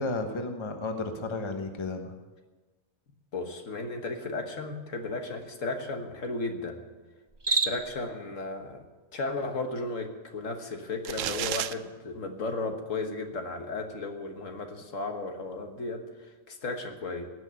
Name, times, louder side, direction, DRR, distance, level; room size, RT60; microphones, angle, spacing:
voice 1, 0.0-2.1, left 2 dB, 25° left, 5 dB, 1.0 m, -33 dB
voice 2, 3.3-6.8 7.5-8.8 9.1-17.3, left 3 dB, 70° left, 5 dB, 1.7 m, -35 dB
Cricket, 7.3-8.0, right 3 dB, 25° right, 0.7 m, -28 dB
sound 1, 11.1-11.7, right 11 dB, 70° right, 0.9 m, -31 dB
17.5 x 6.3 x 9.4 m, 1.3 s
omnidirectional pair, 1.4 m